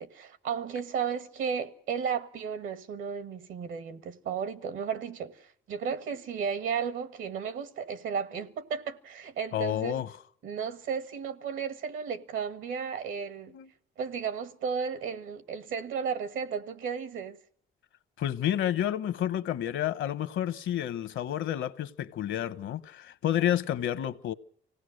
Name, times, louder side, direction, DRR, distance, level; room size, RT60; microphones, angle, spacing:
voice 1, 0.0-10.0 10.4-13.5 14.0-17.4, right 6 dB, 80° right, 1.6 m, -34 dB
voice 2, 9.5-10.1 13.5-13.7 18.2-24.3, left 11 dB, 75° left, 1.0 m, -30 dB
25.5 x 17.5 x 6.4 m
cardioid pair, 90°, 20 cm